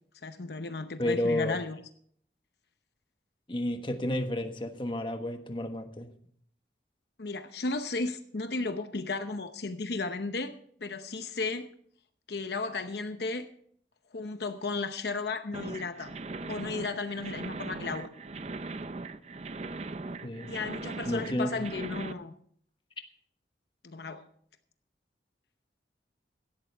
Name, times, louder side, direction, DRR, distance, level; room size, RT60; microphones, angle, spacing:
voice 1, 0.2-1.8 7.2-10.6 10.8-11.7 12.3-13.5 14.1-16.1 16.5-18.1 20.5-22.3 23.8-24.2, left 3 dB, 65° left, 8 dB, 0.8 m, -34 dB
voice 2, 1.0-1.6 3.5-6.1 20.2-20.5 21.0-21.5, left 1 dB, 25° left, 6 dB, 1.3 m, -31 dB
sound 1, 15.5-22.1, right 3 dB, 35° right, 0.5 m, -39 dB
17.0 x 13.0 x 3.5 m, 0.62 s
head